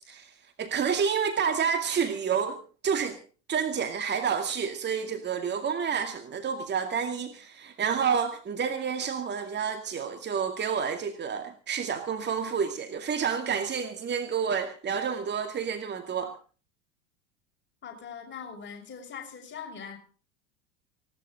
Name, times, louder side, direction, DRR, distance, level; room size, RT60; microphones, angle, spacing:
voice 1, 0.6-3.2 3.5-16.3, right 7 dB, 30° right, 7 dB, 2.2 m, -29 dB
voice 2, 17.8-20.0, left 6 dB, 30° left, 1 dB, 6.5 m, -41 dB
19.5 x 17.5 x 3.9 m, 0.38 s
figure-of-eight pair, 80°, 37 cm